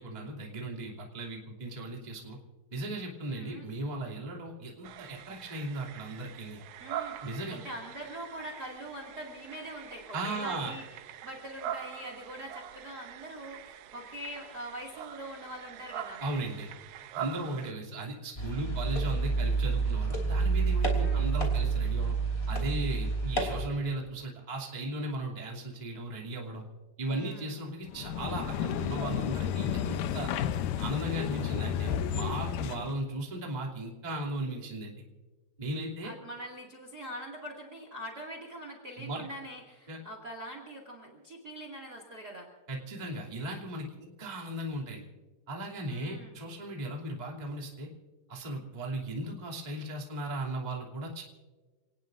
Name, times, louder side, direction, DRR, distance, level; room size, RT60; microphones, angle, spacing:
voice 1, 0.0-2.4 2.7-6.6 7.2-7.6 10.1-10.8 16.2-16.7 17.1-22.2 22.5-26.6 27.0-30.3 30.8-35.0 35.6-36.1 39.0-39.2 39.9-40.0 42.7-45.1 45.5-47.9 48.3-51.2, right 1 dB, 15° right, -1 dB, 2.0 m, -37 dB
voice 2, 3.3-3.7 6.8-10.8 11.2-16.2 21.0-21.3 27.1-27.6 36.0-42.5 45.9-46.3, equal, 30° right, 2 dB, 2.1 m, -43 dB
sound 1, 4.8-17.7, right 10 dB, 85° right, 1.7 m, -43 dB
sound 2, 18.4-23.7, right 4 dB, 15° left, 2.8 m, -28 dB
sound 3, 27.9-33.0, left 9 dB, 75° left, 2.0 m, -32 dB
29.0 x 19.0 x 2.6 m, 1.3 s
omnidirectional pair, 4.5 m